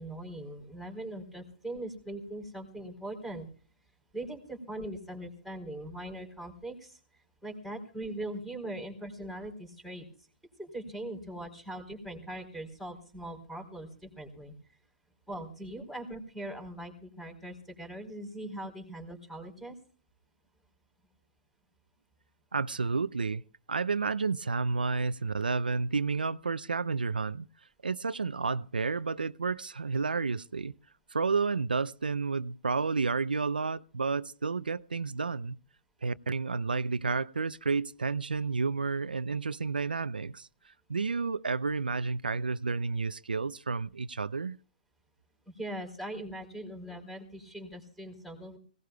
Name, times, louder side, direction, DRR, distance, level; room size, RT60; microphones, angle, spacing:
voice 1, 0.0-3.5 4.1-7.0 7.4-10.1 10.6-14.5 15.3-19.8 45.6-48.6, right 1 dB, ahead, 4.1 m, -41 dB
voice 2, 22.5-23.4 23.7-27.5 27.8-30.7 31.1-35.6 36.0-44.6, right 4 dB, 90° right, 0.6 m, -31 dB
24.5 x 17.5 x 2.3 m
hypercardioid pair, 140°, 5 cm